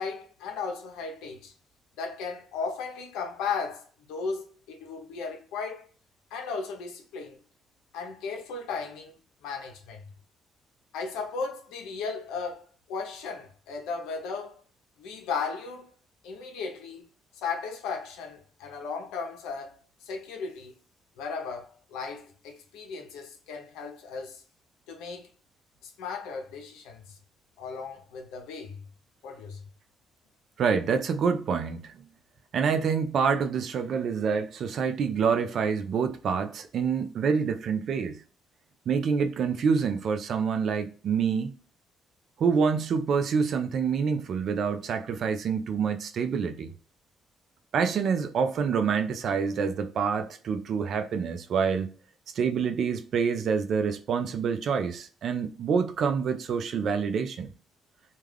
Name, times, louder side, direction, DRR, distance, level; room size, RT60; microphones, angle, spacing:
voice 1, 0.0-1.5 2.0-5.9 6.3-7.4 7.9-9.1 9.4-10.1 10.9-14.6 15.0-15.9 16.2-17.1 17.3-20.7 21.2-24.4 24.9-25.3 25.8-27.2 27.6-28.8 29.2-29.6, left 5 dB, 90° left, 0.6 m, -36 dB
voice 2, 30.6-32.0 32.5-38.2 38.9-41.5 42.4-46.7 47.7-51.9 52.3-57.5, right 6 dB, 65° right, 0.4 m, -27 dB
2.3 x 2.3 x 3.2 m
cardioid pair, 80°, 0 cm